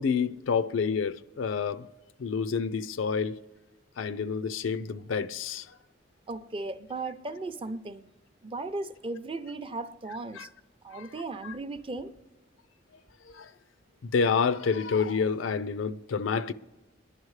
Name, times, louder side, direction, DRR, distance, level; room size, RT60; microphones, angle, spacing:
voice 1, 0.0-1.9 2.2-3.4 4.0-5.7 10.3-10.5 10.9-11.1 11.4-11.5 13.3-13.5 14.0-16.5, left 5 dB, 80° left, 0.5 m, -28 dB
voice 2, 6.3-8.0 8.4-10.5 10.8-12.1, right 2 dB, 30° right, 0.5 m, -36 dB
27.5 x 10.5 x 3.2 m
head